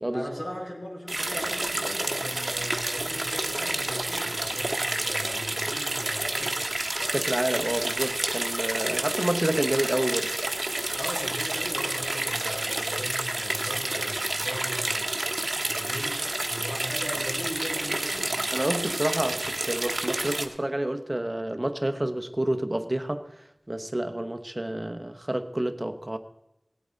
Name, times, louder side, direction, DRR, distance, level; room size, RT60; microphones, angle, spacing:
voice 1, 0.1-6.6 10.9-15.1 15.6-18.3, equal, 70° left, 4.9 m, -38 dB
sound 1, 1.1-20.5, right 2 dB, 60° right, 1.0 m, -29 dB
voice 2, 7.1-10.3 18.5-23.2 23.7-26.2, right 1 dB, 35° right, 0.9 m, -29 dB
18.0 x 8.5 x 4.0 m
wide cardioid pair, 50°, 0 cm